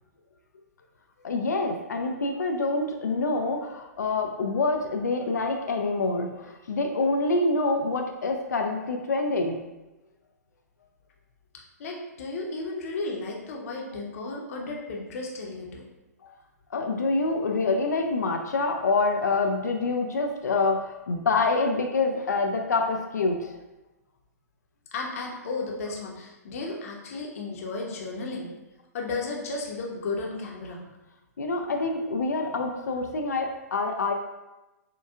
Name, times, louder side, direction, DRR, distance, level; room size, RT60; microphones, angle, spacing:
voice 1, 1.2-9.6 16.7-23.5 31.4-34.1, left 3 dB, 80° left, 3 dB, 0.4 m, -26 dB
voice 2, 11.8-15.8 24.9-28.5 28.9-30.8, left 3 dB, 60° left, -1 dB, 0.8 m, -34 dB
4.4 x 2.3 x 2.3 m, 1.0 s
hypercardioid pair, 120°, 9 cm